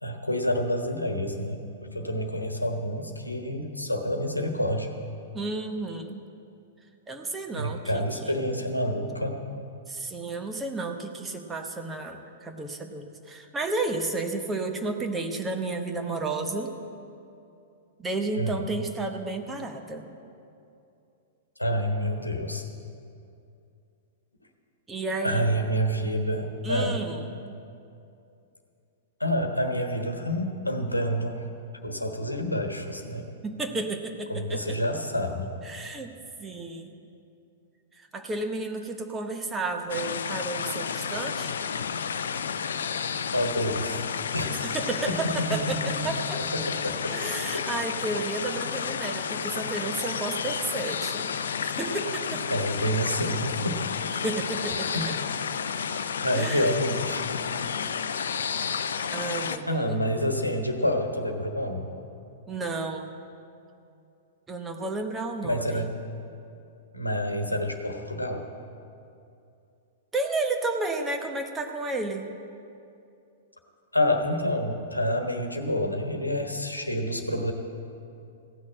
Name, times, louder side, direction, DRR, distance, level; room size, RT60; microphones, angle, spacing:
voice 1, 0.0-4.9 7.5-9.4 18.4-18.6 21.6-22.6 25.2-27.0 29.2-31.4 31.8-33.3 34.3-35.5 43.3-44.0 44.3-44.6 45.3-45.9 46.6-47.1 52.5-53.9 54.9-55.1 56.2-57.3 59.7-61.9 65.4-65.9 66.9-68.4 73.9-77.5, equal, 90° left, 4 dB, 1.2 m, -28 dB
voice 2, 5.3-6.2 7.1-8.4 9.9-16.7 18.0-20.1 24.9-25.5 26.6-27.4 33.4-34.8 35.6-36.1 36.4-36.9 37.9-41.5 44.5-46.4 47.1-51.3 51.6-52.4 54.2-55.0 56.3-56.7 58.4-58.7 59.1-60.0 62.5-63.2 64.5-65.9 70.1-72.3, right 3 dB, 15° right, 4 dB, 1.0 m, -32 dB
sound 1, 39.9-59.6, left 6 dB, 65° left, 0.5 m, -31 dB
15.5 x 6.4 x 8.6 m, 2.6 s
figure-of-eight pair, 105°, 0 cm